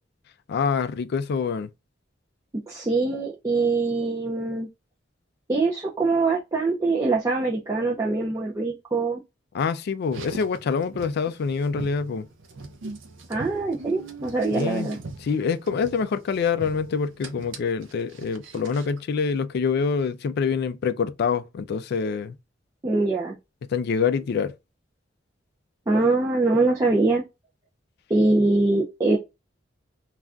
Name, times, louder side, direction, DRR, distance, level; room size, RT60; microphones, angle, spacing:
voice 1, 0.5-1.7 9.5-12.3 14.5-14.9 15.2-22.4 23.7-24.5, left 5 dB, 55° left, 0.3 m, -26 dB
voice 2, 2.7-4.7 5.5-9.2 13.3-15.0 22.8-23.4 25.9-27.2 28.1-29.2, right 3 dB, 20° right, 0.5 m, -23 dB
Car, 10.0-19.0, right 2 dB, 70° right, 0.5 m, -41 dB
2.4 x 2.2 x 3.6 m
head